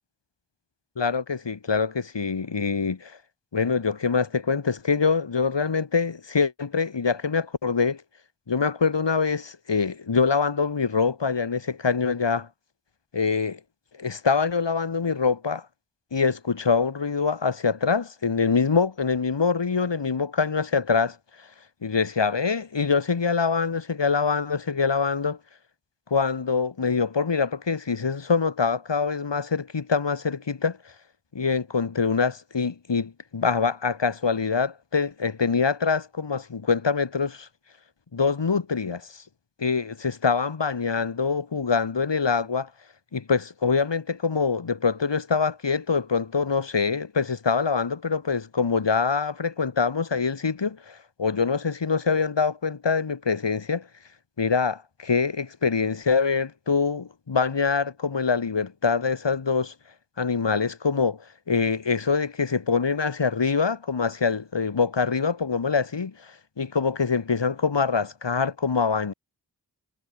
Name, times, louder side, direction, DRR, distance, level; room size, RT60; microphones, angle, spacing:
voice 1, 1.0-3.2 3.5-8.0 8.5-12.5 13.1-13.6 14.0-15.6 16.1-21.2 21.8-25.4 26.1-30.8 31.3-37.5 38.1-39.1 39.6-42.7 43.1-53.9 54.4-59.7 60.2-69.1, left 5 dB, 75° left, 2.8 m, -24 dB
wide cardioid pair, 60°, 44 cm